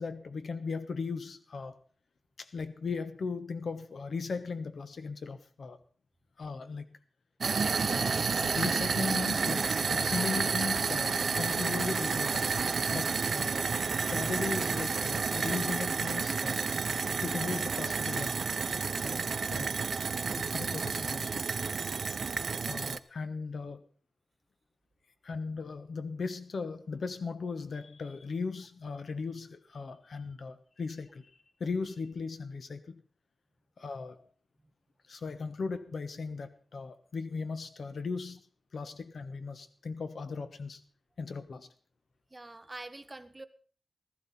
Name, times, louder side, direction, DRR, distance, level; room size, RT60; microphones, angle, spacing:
voice 1, 0.0-1.8 2.4-5.8 6.4-6.9 7.9-12.5 12.9-13.7 14.1-16.6 17.2-19.8 20.4-21.5 22.6-23.8 25.2-31.3 31.6-33.0 33.8-34.3 35.1-38.5 38.7-40.8 41.2-41.7, left 4 dB, 70° left, 1.2 m, -37 dB
sound 1, 7.4-23.0, right 5 dB, 65° right, 0.6 m, -30 dB
voice 2, 42.3-43.5, right 2 dB, 25° right, 1.1 m, -46 dB
15.0 x 14.0 x 4.2 m
wide cardioid pair, 95°, 0 cm